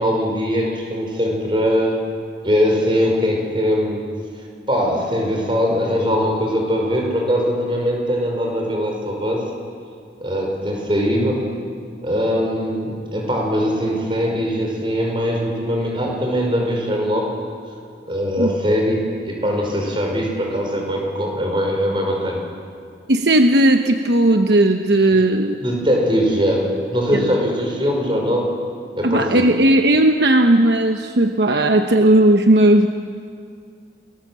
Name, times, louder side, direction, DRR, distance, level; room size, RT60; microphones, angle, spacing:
voice 1, 0.0-2.0 2.4-4.1 4.7-9.5 10.2-11.4 12.0-17.3 18.1-22.4 25.1-25.2 25.6-28.4 29.0-29.5, equal, 25° right, 0 dB, 5.4 m, -21 dB
voice 2, 23.1-25.5 27.1-27.3 29.0-32.9, right 1 dB, 70° right, 6 dB, 1.0 m, -15 dB
29.5 x 20.5 x 7.6 m, 2.3 s
head